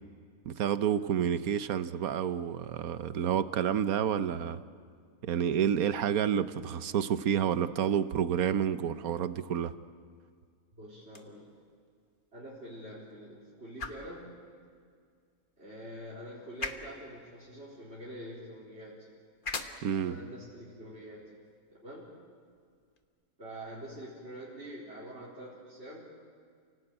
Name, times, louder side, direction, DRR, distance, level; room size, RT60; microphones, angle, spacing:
voice 1, 0.5-4.6 5.2-9.7 19.8-20.1, right 9 dB, 85° right, 12 dB, 1.3 m, -29 dB
voice 2, 10.8-11.5 12.3-14.4 15.6-19.1 20.0-21.3 21.7-22.1 23.4-26.1, equal, 45° right, -8 dB, 4.2 m, -45 dB
sound 1, 11.0-23.0, left 3 dB, 35° left, 1.5 m, -46 dB
29.5 x 18.0 x 8.9 m, 2.1 s
omnidirectional pair, 1.5 m